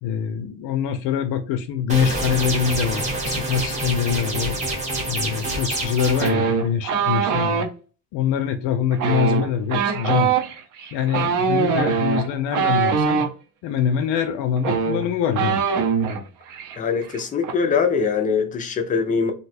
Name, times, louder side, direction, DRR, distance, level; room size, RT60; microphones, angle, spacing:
voice 1, 0.0-4.6 5.1-7.7 8.1-10.3 10.9-13.2 13.6-15.6, left 8 dB, 80° left, 0.6 m, -24 dB
sound 1, 1.9-6.3, right 2 dB, 15° right, 0.8 m, -26 dB
sound 2, 6.2-7.7 8.9-13.3 14.2-14.3 14.6-16.2 16.5-16.8 17.0-17.5, right 6 dB, 50° right, 0.6 m, -22 dB
voice 2, 16.8-19.3, left 5 dB, 20° left, 0.3 m, -22 dB
2.7 x 2.2 x 4.0 m
cardioid pair, 165°, 42 cm